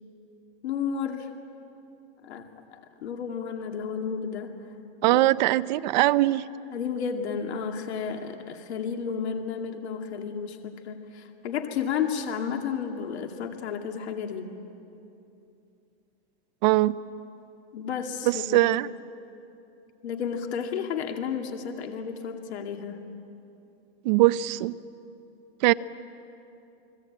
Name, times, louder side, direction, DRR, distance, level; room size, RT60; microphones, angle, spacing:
voice 1, 0.6-1.3 2.2-4.6 5.0-5.2 6.7-14.5 17.7-18.6 20.0-23.0, left 7 dB, 80° left, 4 dB, 2.4 m, -32 dB
voice 2, 5.0-6.4 16.6-17.0 18.2-18.9 24.0-24.8 25.6-25.7, right 17 dB, 45° right, 13 dB, 0.6 m, -21 dB
30.0 x 20.0 x 8.8 m, 2.8 s
supercardioid pair, 165°, 32 cm